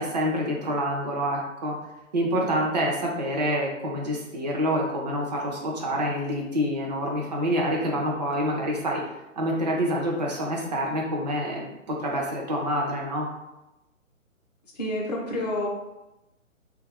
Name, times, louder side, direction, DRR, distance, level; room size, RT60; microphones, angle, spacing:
voice 1, 0.0-1.7 2.1-9.0 9.4-11.7 12.0-13.3, equal, 30° right, -1 dB, 0.5 m, -27 dB
voice 2, 14.8-15.7, left 1 dB, 30° left, -2 dB, 0.7 m, -28 dB
3.3 x 2.3 x 3.2 m, 0.96 s
figure-of-eight pair, 135°, 41 cm